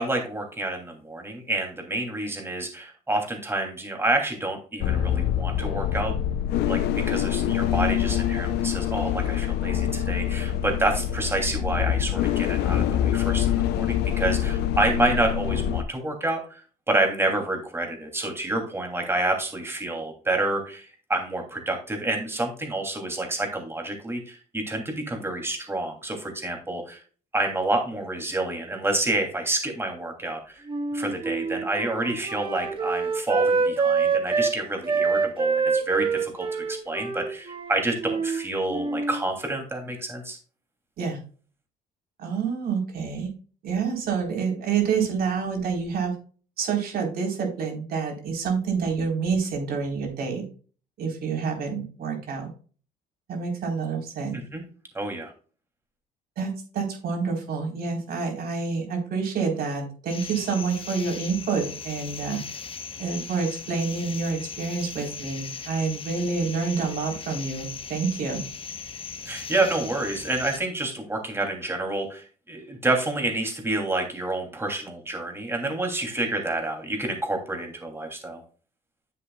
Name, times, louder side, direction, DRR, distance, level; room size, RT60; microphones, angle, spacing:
voice 1, 0.0-6.1 6.6-16.6 16.9-27.0 27.3-30.7 30.9-40.4 54.3-54.6 54.9-55.3 69.2-78.4, right 2 dB, 15° right, 2 dB, 2.9 m, -28 dB
sound 1, 4.8-15.8, left 10 dB, 75° left, 0.6 m, -25 dB
Wind instrument woodwind instrument, 30.7-34.6 34.9-38.4 38.7-39.2, right 5 dB, 30° right, 1.6 m, -26 dB
voice 2, 42.2-43.3 43.6-46.1 46.6-50.4 51.0-52.5 53.3-54.4 56.4-62.4 63.0-68.4, right 5 dB, 65° right, 1 dB, 4.0 m, -28 dB
sound 2, 60.1-70.6, left 6 dB, 30° left, 1.0 m, -38 dB
9.6 x 7.7 x 2.3 m, 0.39 s
cardioid pair, 110°, 17 cm